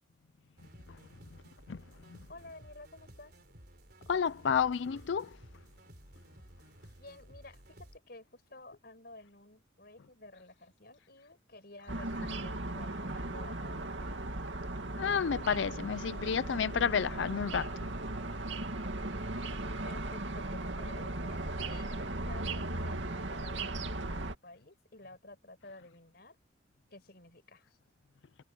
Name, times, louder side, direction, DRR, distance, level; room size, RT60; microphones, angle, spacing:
sound 1, 0.6-8.0, right 1 dB, 55° right, 4.7 m, -55 dB
voice 1, 2.3-3.3 7.0-14.4 19.8-26.4 26.9-27.8, left 2 dB, 55° left, 5.6 m, -52 dB
voice 2, 4.1-5.3 15.0-17.8, left 6 dB, 70° left, 0.4 m, -30 dB
sound 2, 11.9-24.4, right 2 dB, 70° right, 2.4 m, -37 dB
head